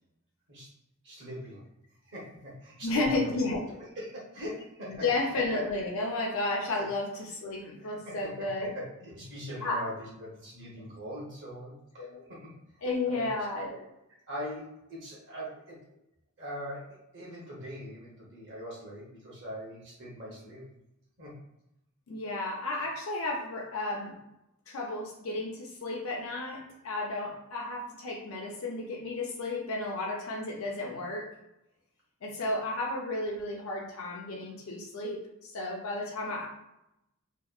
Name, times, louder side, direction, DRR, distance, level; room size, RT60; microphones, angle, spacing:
voice 1, 1.0-1.6 2.0-3.3 3.8-5.0 6.8-6.9 7.8-8.5 8.7-12.5 13.0-13.3 14.3-15.8 16.4-20.6 21.2-21.3, equal, 55° right, -5 dB, 0.9 m, -42 dB
voice 2, 2.8-3.8 4.9-8.7 9.6-9.9 12.0-12.2 12.8-13.9 22.1-24.2 24.7-31.4 32.2-36.5, left 2 dB, 65° left, -2 dB, 0.5 m, -33 dB
2.8 x 2.1 x 2.4 m, 0.85 s
head